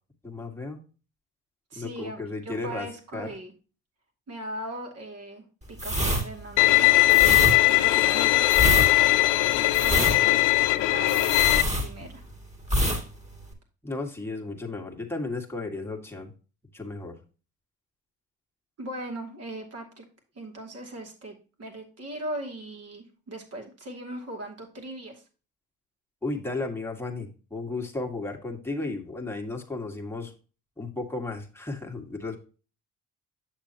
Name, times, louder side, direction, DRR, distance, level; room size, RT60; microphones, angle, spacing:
voice 1, 0.2-0.8 1.7-2.9 3.1-3.3 13.8-16.3 16.7-17.1 26.2-30.3 30.8-32.4, left 3 dB, 5° left, 1 dB, 1.8 m, -34 dB
voice 2, 1.7-3.5 4.3-10.4 10.8-12.2 18.8-20.0 20.3-25.2, right 1 dB, 50° right, 2 dB, 2.6 m, -39 dB
sound 1, 5.7-12.3 12.6-13.0 13.3-13.5, equal, 20° right, 2.4 m, -26 dB
Bowed string instrument, 6.6-11.6, left 17 dB, 75° left, 0.5 m, -20 dB
7.8 x 6.7 x 2.9 m, 0.35 s
supercardioid pair, 60°, 32 cm